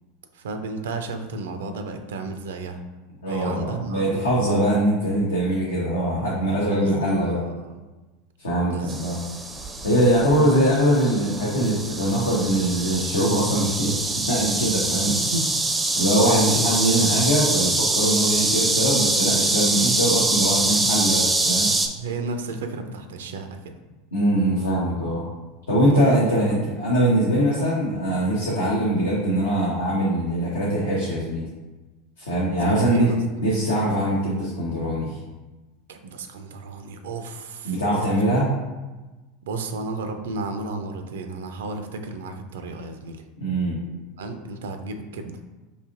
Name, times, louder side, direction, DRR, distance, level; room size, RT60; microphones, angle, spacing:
voice 1, 0.3-2.8 3.3-4.3 6.6-7.8 8.7-9.0 15.1-15.5 15.8-16.0 22.0-23.8 25.9-26.6 32.5-33.2 35.9-38.2 39.5-43.2 44.2-45.4, right 3 dB, 75° right, 6 dB, 0.4 m, -33 dB
voice 2, 3.2-7.4 8.4-9.2 9.8-13.9 14.3-15.1 15.9-21.7 24.1-25.2 25.7-31.5 32.2-33.1 33.4-35.2 37.6-38.5 43.4-43.8, right 1 dB, 85° left, -6 dB, 0.7 m, -22 dB
sound 1, 8.9-21.9, right 2 dB, 10° right, 0.4 m, -24 dB
4.1 x 2.7 x 2.5 m, 1.2 s
hypercardioid pair, 85°, 0 cm